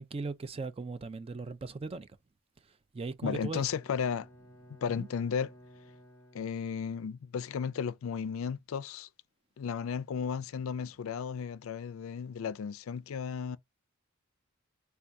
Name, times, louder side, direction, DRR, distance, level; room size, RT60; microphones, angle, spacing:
voice 1, 0.0-2.1 2.9-3.7 4.9-5.1, right 3 dB, 25° right, 0.3 m, -38 dB
voice 2, 3.2-4.3 4.7-5.5 6.3-9.1 9.6-13.6, left 6 dB, 70° left, 0.4 m, -34 dB
Bowed string instrument, 3.6-7.2, equal, 10° left, 0.8 m, -57 dB
4.6 x 2.3 x 2.5 m
head